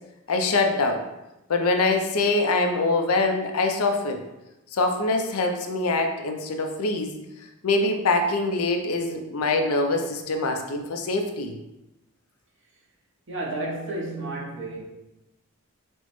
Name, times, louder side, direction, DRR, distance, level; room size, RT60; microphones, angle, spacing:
voice 1, 0.3-1.0 1.5-4.2 4.7-7.2 7.6-11.5, left 2 dB, 85° left, 4 dB, 0.5 m, -24 dB
voice 2, 13.3-14.8, right 2 dB, 60° right, -2 dB, 0.9 m, -31 dB
6.1 x 2.1 x 3.0 m, 0.95 s
head